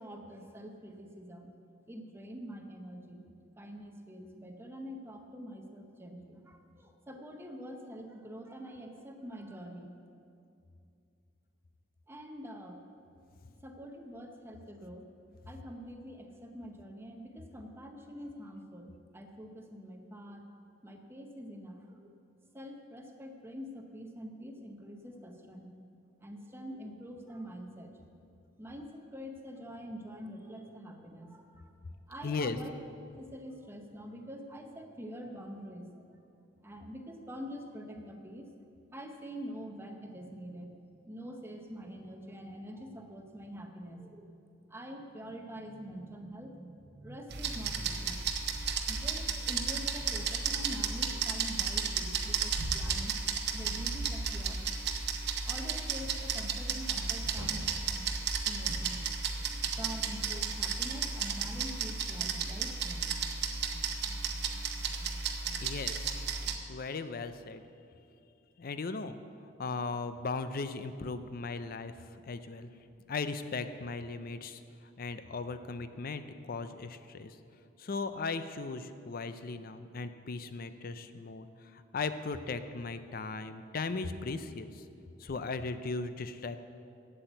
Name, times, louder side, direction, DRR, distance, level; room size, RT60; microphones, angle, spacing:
voice 1, 0.0-1.5 1.9-3.3 3.6-9.9 12.1-12.8 13.6-15.0 15.5-20.5 20.8-22.1 22.5-25.7 26.2-28.0 28.6-31.7 32.1-32.7 33.1-36.0 36.6-38.5 38.9-40.7 41.1-44.3 44.7-48.5 48.9-53.1 53.5-54.8 55.5-57.6 57.9-58.1 58.4-59.0 59.8-63.1, equal, 10° right, 3 dB, 0.8 m, -45 dB
voice 2, 32.2-32.6 65.6-66.1 66.7-67.6 68.6-69.1 69.6-72.7 73.1-74.6 75.0-77.4 77.8-84.8 85.2-86.6, left 4 dB, 50° left, 11 dB, 0.5 m, -37 dB
sound 1, 47.3-66.6, right 5 dB, 60° right, 0.8 m, -33 dB
8.3 x 7.8 x 7.9 m, 2.6 s
head